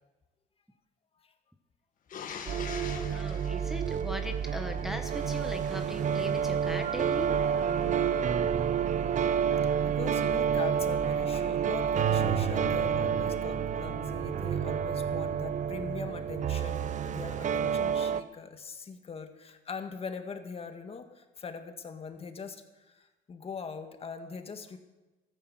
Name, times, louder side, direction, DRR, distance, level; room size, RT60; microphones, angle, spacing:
sound 1, 2.1-4.8 7.2-8.7, left 7 dB, 55° left, 1.7 m, -44 dB
sound 2, 2.5-18.2, right 8 dB, 45° right, 0.7 m, -29 dB
voice 1, 3.1-7.3, equal, ahead, 4 dB, 1.1 m, -39 dB
voice 2, 9.8-24.8, left 5 dB, 35° left, 7 dB, 1.7 m, -41 dB
14.0 x 10.5 x 7.6 m, 1.1 s
cardioid pair, 110°, 17 cm